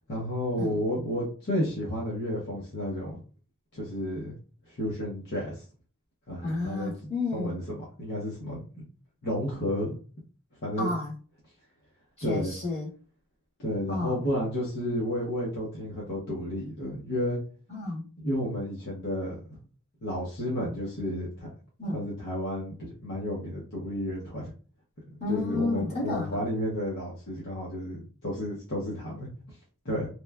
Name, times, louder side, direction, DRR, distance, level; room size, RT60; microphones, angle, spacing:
voice 1, 0.1-3.2 3.7-4.3 4.7-5.6 6.3-6.9 7.3-8.6 9.2-9.9 10.6-10.9 12.2-12.5 13.6-17.4 18.2-19.4 20.0-21.5 21.9-24.5 25.1-29.3 29.8-30.1, equal, 50° left, -5 dB, 0.8 m, -31 dB
voice 2, 6.4-7.6 10.8-11.1 12.2-12.9 13.9-14.2 17.7-18.1 21.8-22.0 25.2-26.4, left 2 dB, 30° left, -6 dB, 1.5 m, -31 dB
3.0 x 2.2 x 2.2 m, 0.38 s
head